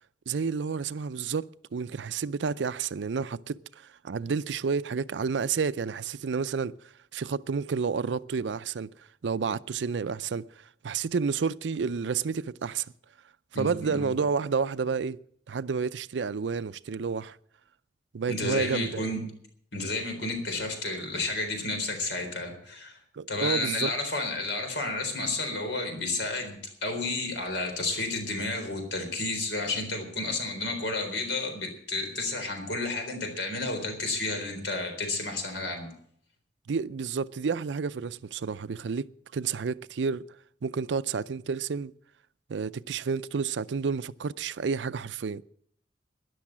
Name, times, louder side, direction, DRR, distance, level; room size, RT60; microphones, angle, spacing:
voice 1, 0.3-3.6 4.0-6.7 7.1-8.9 9.2-10.5 10.8-12.9 13.6-15.2 15.5-17.4 18.1-19.1 23.1-23.9 36.7-40.3 40.6-41.9 42.5-45.4, right 5 dB, 80° right, 0.5 m, -30 dB
voice 2, 13.5-14.1 18.3-19.2 19.7-23.0 23.3-35.9, left 2 dB, 80° left, 3.9 m, -31 dB
13.0 x 11.0 x 7.4 m
head